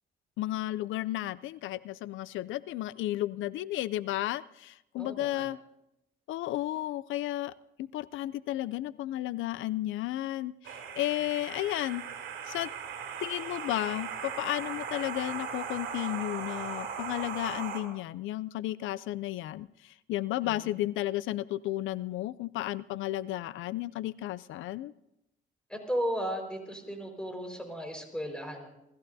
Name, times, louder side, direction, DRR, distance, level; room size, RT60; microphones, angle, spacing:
voice 1, 0.4-5.6 6.3-7.5 7.9-12.0 12.5-12.7 13.2-24.9, left 15 dB, 80° left, 19 dB, 0.4 m, -33 dB
voice 2, 5.0-5.5 20.4-20.7 25.7-28.7, equal, 5° left, 2 dB, 4.7 m, -35 dB
sound 1, 10.6-17.8, right 7 dB, 80° right, 2.9 m, -38 dB
29.0 x 14.5 x 2.7 m, 0.86 s
cardioid pair, 90°, 20 cm